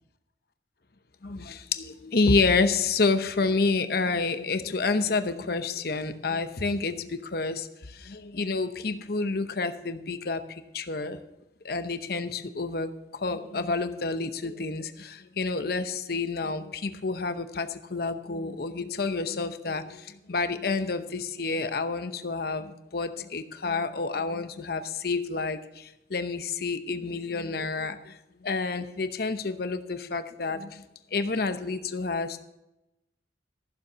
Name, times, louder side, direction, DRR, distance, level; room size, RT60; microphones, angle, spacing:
voice 1, 1.2-11.2 11.6-30.8 31.1-32.4, left 3 dB, 55° left, 10 dB, 0.8 m, -29 dB
14.5 x 7.2 x 6.2 m, 0.91 s
head